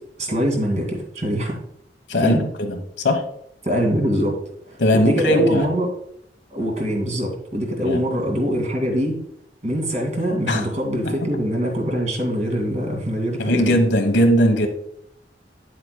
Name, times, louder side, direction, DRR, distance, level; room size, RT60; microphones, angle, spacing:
voice 1, 0.2-1.6 2.2-2.4 3.6-4.4 4.7-5.9 6.5-9.2 9.6-13.7, equal, 40° right, 1 dB, 2.2 m, -23 dB
voice 2, 2.1-2.8 3.0-3.2 4.8-5.7 7.8-8.0 10.5-10.6 11.0-11.1 13.4-14.7, equal, 85° left, 5 dB, 1.1 m, -19 dB
9.6 x 7.6 x 2.2 m, 0.73 s
head